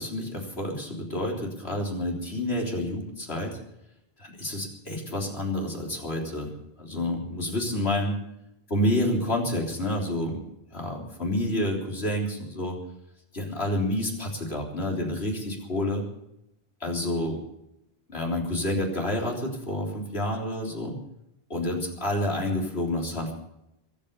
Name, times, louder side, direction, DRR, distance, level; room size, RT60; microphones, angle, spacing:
voice 1, 0.0-3.6 4.2-6.5 6.8-8.2 8.7-10.4 10.7-12.8 13.3-16.0 16.8-17.4 18.1-21.0 21.5-23.3, left 1 dB, 85° left, 0 dB, 3.9 m, -29 dB
22.5 x 8.7 x 6.7 m, 0.82 s
omnidirectional pair, 1.0 m